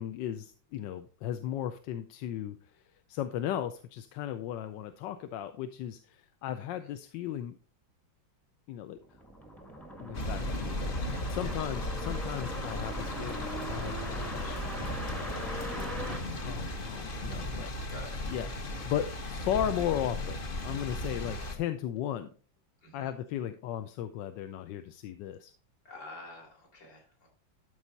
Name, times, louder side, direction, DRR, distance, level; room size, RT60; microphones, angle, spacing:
voice 1, 0.0-7.6 8.7-9.0 10.0-17.9 18.3-18.5 18.8-22.3 22.9-25.5, left 11 dB, 75° left, 9 dB, 1.2 m, -36 dB
sound 1, 9.0-17.3, equal, ahead, 1.0 m, -40 dB
sound 2, 10.1-21.6, left 1 dB, 35° left, 1.0 m, -36 dB
voice 2, 22.8-23.1 25.8-27.3, left 1 dB, 55° left, -1 dB, 4.1 m, -47 dB
13.0 x 4.8 x 4.0 m, 0.38 s
omnidirectional pair, 2.1 m